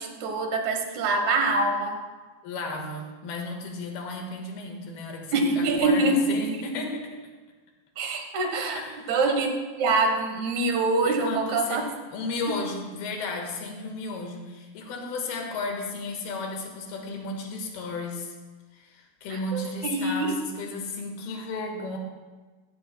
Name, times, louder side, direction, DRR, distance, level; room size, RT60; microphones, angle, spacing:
voice 1, 0.0-2.0 5.3-6.6 8.0-11.8 12.5-12.6 19.3-20.4, right 3 dB, 65° right, 5 dB, 2.1 m, -25 dB
voice 2, 2.4-7.0 8.8-8.9 11.0-11.8 12.1-18.3 18.7-22.0, left 3 dB, 80° left, 2 dB, 3.3 m, -34 dB
15.0 x 14.0 x 2.2 m, 1.3 s
omnidirectional pair, 4.4 m